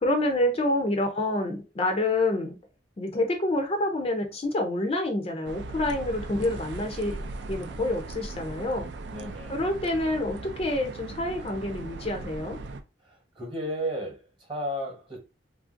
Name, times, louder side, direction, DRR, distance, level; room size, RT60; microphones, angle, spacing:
voice 1, 0.0-2.6 3.0-7.2 7.5-8.9 9.5-12.6, left 1 dB, 30° left, 0.4 m, -27 dB
sound 1, 5.4-12.8, right 3 dB, 65° right, 0.4 m, -39 dB
voice 2, 9.1-9.7 13.0-15.2, equal, 25° right, 1.0 m, -34 dB
3.2 x 2.5 x 2.5 m
head